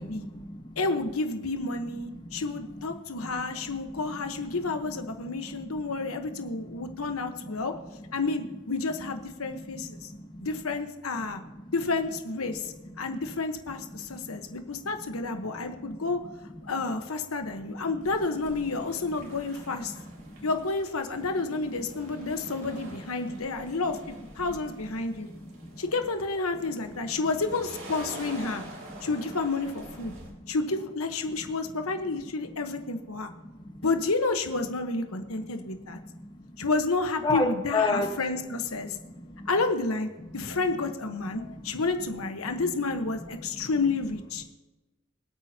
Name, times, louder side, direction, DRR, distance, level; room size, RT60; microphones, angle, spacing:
voice 1, 0.0-0.7 2.1-2.5 2.7-2.8 3.2-8.1 9.4-10.5 11.1-11.7 12.5-13.1 13.8-16.7 17.4-18.1 18.8-18.9 19.2-19.6 19.8-20.5 21.3-21.4 21.7-22.3 22.7-23.0 23.2-23.5 24.5-24.6 25.1-25.8 26.9-27.0 28.9-29.1 30.0-30.5 31.4-31.8 33.4-33.8 35.3-36.7 37.2-38.1 38.8-39.5 40.3-40.6 41.2-41.9 42.4-42.7 43.2-43.7, left 2 dB, 20° left, 3 dB, 1.3 m, -38 dB
voice 2, 0.8-7.7 8.1-10.1 10.4-11.4 11.7-12.7 13.0-16.2 16.7-19.9 20.4-24.0 24.4-25.3 25.8-28.6 29.0-30.1 30.5-33.3 33.8-36.0 36.6-38.9 39.5-44.4, left 3 dB, 85° left, 6 dB, 1.2 m, -30 dB
sound 1, 18.0-30.3, right 1 dB, 70° right, 3.3 m, -47 dB
25.5 x 8.6 x 2.9 m, 1.1 s
head